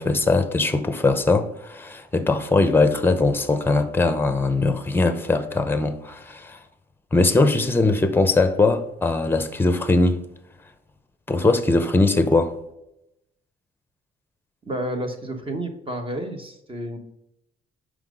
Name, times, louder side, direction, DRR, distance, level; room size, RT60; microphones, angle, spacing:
voice 1, 0.0-6.6 7.1-10.2 11.3-12.6, left 3 dB, 10° left, 0.8 m, -20 dB
voice 2, 14.6-17.0, right 1 dB, 25° right, 1.2 m, -30 dB
5.8 x 5.0 x 5.2 m
cardioid pair, 90°, 20 cm